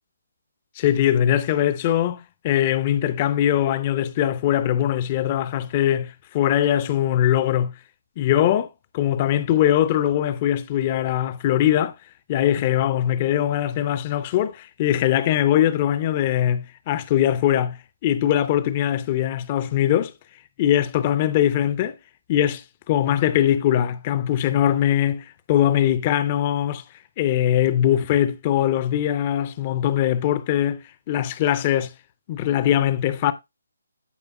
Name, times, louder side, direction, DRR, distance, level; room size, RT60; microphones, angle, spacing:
voice 1, 0.8-7.7 8.2-8.7 8.9-11.9 12.3-20.1 20.6-22.0 22.3-26.8 27.2-31.9 32.3-33.3, left 11 dB, 30° left, 0.5 m, -21 dB
11.0 x 5.1 x 2.2 m
figure-of-eight pair, 145°, 0 cm